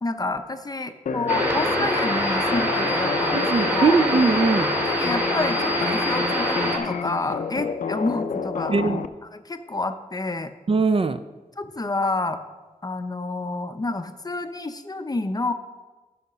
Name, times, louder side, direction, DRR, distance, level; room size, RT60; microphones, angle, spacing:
voice 1, 0.0-4.0 4.9-8.7 9.3-10.5 11.6-12.4 12.8-15.5, left 2 dB, 30° left, 9 dB, 0.5 m, -29 dB
sound 1, 1.1-9.1, left 5 dB, 85° left, 0.4 m, -30 dB
sound 2, 1.3-6.8, equal, 15° right, 1.9 m, -24 dB
voice 2, 3.3-4.7 8.7-9.0 10.7-11.2, right 4 dB, 45° right, 11 dB, 0.4 m, -21 dB
10.0 x 5.8 x 5.5 m, 1.2 s
wide cardioid pair, 100°, 13 cm